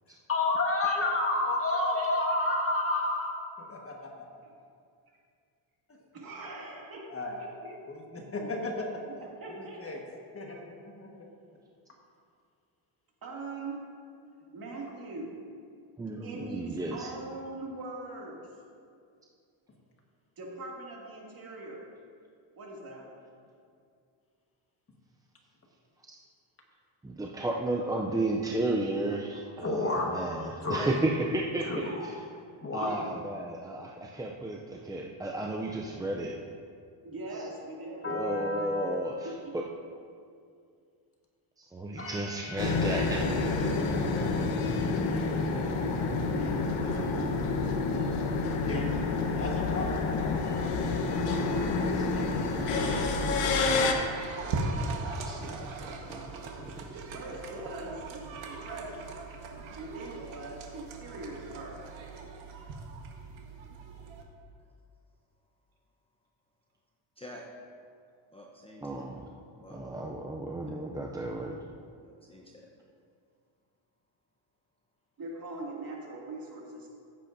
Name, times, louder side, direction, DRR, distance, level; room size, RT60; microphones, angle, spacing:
voice 1, 0.3-4.1 7.1-7.4 7.9-9.0 9.5-10.0 10.3-11.3 29.6-31.0 31.6-32.1 32.6-32.9 38.0-39.2 42.0-43.0 46.8-47.2 48.5-48.9 49.4-50.0 51.2-51.6, left 2 dB, 25° left, 0 dB, 1.5 m, -32 dB
voice 2, 6.1-7.7 8.3-8.5 9.4-9.9 13.2-13.8 14.5-15.3 16.2-18.4 20.4-21.8 22.6-23.0 32.8-33.0 37.0-38.1 39.2-39.5 43.2-44.0 57.1-58.2 58.5-59.2 59.8-61.9 75.2-76.9, right 2 dB, 45° right, -3 dB, 2.4 m, -42 dB
voice 3, 16.0-17.1 26.1-26.2 27.0-32.2 32.7-36.4 38.0-39.6 41.6-43.2 52.0-52.1 55.2-56.2 56.6-56.7 68.8-69.3 69.7-71.6, right 2 dB, 10° right, -1 dB, 0.3 m, -33 dB
sound 1, 42.6-53.9, left 3 dB, 75° left, 1.2 m, -28 dB
sound 2, 51.3-64.2, right 3 dB, 65° right, 1.4 m, -40 dB
voice 4, 68.3-69.1 69.6-69.8 70.6-70.7 72.0-72.7, left 1 dB, 10° left, -2 dB, 0.8 m, -49 dB
15.0 x 8.4 x 2.6 m, 2.3 s
cardioid pair, 125°, 50 cm